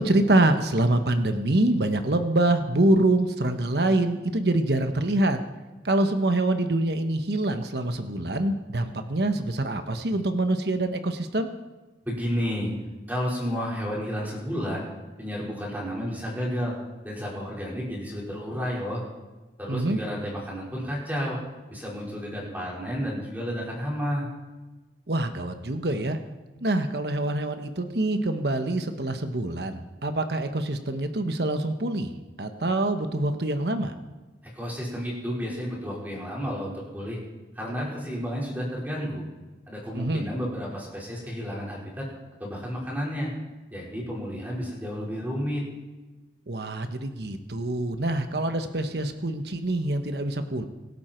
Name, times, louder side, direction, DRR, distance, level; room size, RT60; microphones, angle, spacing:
voice 1, 0.0-5.4 5.8-11.5 19.7-20.0 25.1-26.2 26.6-32.1 32.4-33.9 39.9-40.3 46.5-50.6, right 1 dB, 65° right, 7 dB, 1.2 m, -25 dB
voice 2, 12.0-12.7 13.1-14.8 15.2-16.8 17.0-19.0 19.6-21.4 21.7-24.3 34.5-37.2 37.5-39.2 39.7-42.1 42.4-43.3 43.7-45.6, equal, 10° right, -4 dB, 4.9 m, -31 dB
25.0 x 12.0 x 4.5 m, 1.2 s
head